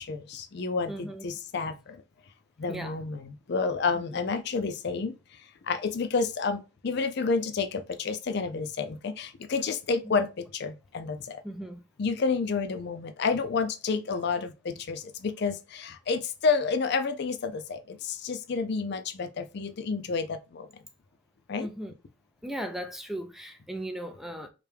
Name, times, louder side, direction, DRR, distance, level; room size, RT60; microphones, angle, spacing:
voice 1, 0.0-2.0 2.6-11.4 12.0-20.7 21.5-21.7, left 4 dB, 60° left, 0.5 m, -30 dB
voice 2, 0.9-1.3 2.7-3.0 3.9-4.2 10.1-10.2 11.4-11.8 21.6-21.9 22.4-24.5, right 1 dB, ahead, 0.4 m, -37 dB
4.9 x 2.2 x 3.3 m
head